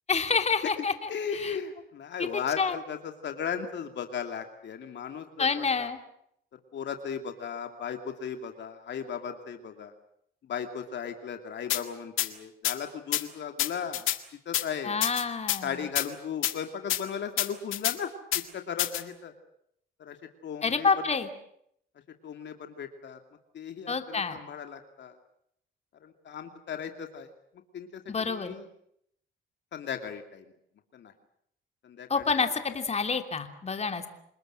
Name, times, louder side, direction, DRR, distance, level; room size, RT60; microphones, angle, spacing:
voice 1, 0.1-1.6 2.2-2.3 2.6-2.8 5.4-6.0 14.8-15.8 20.6-21.3 23.9-24.4 28.1-28.5 32.1-34.1, left 5 dB, 35° left, 6 dB, 3.0 m, -28 dB
voice 2, 1.1-5.9 6.5-9.9 10.4-14.1 14.5-15.0 15.6-19.3 20.0-20.2 20.4-20.9 22.2-23.2 23.5-25.2 26.0-27.3 27.7-28.6 29.7-30.4 30.9-31.1 31.8-32.2, left 7 dB, 65° left, 6 dB, 2.6 m, -36 dB
sound 1, 11.7-11.8 12.2-12.3 12.6-12.8 13.1-13.2 13.6-14.2 14.5-14.6 15.0-15.6 16.0-16.1 16.4-16.5 16.9-17.0 17.4-18.0 18.3-18.4 18.8-19.0, left 13 dB, 85° left, 1.9 m, -27 dB
28.0 x 20.5 x 7.7 m, 0.71 s
cardioid pair, 90°, 20 cm